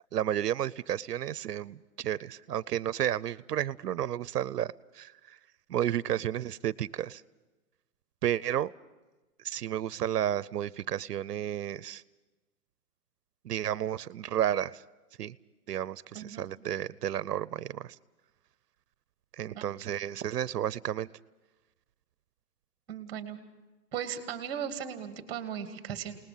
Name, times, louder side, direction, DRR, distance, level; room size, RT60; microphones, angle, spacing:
voice 1, 0.1-5.1 5.7-7.2 8.2-8.7 9.4-12.0 13.4-14.8 15.2-15.3 15.7-18.0 19.4-21.1, right 11 dB, 80° right, 20 dB, 0.7 m, -32 dB
voice 2, 22.9-23.4 23.9-26.2, right 8 dB, 10° right, 10 dB, 1.4 m, -37 dB
29.0 x 19.5 x 5.6 m, 1.1 s
hypercardioid pair, 170°, 47 cm